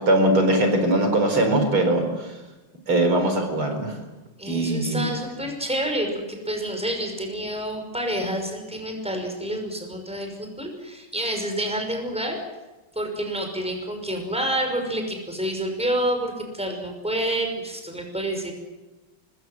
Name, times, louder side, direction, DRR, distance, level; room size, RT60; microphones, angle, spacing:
voice 1, 0.0-2.3 2.9-4.0 4.5-5.0, right 1 dB, 75° right, 5 dB, 5.4 m, -21 dB
voice 2, 4.4-12.4 12.9-18.5, right 1 dB, 5° right, 4 dB, 5.7 m, -28 dB
26.0 x 21.5 x 7.9 m, 1.1 s
omnidirectional pair, 2.3 m